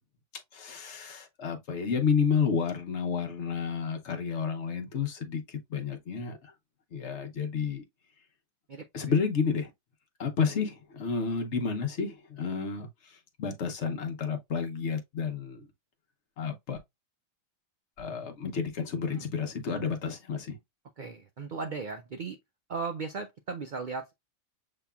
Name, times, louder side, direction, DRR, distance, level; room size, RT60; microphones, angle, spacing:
voice 1, 0.5-6.5 6.9-7.8 8.9-9.7 10.2-15.7 16.4-16.8 18.0-20.6, left 6 dB, 60° left, 1.1 m, -31 dB
voice 2, 21.0-22.4 22.7-24.1, right 4 dB, 65° right, 0.4 m, -36 dB
6.9 x 2.8 x 2.3 m
omnidirectional pair, 1.4 m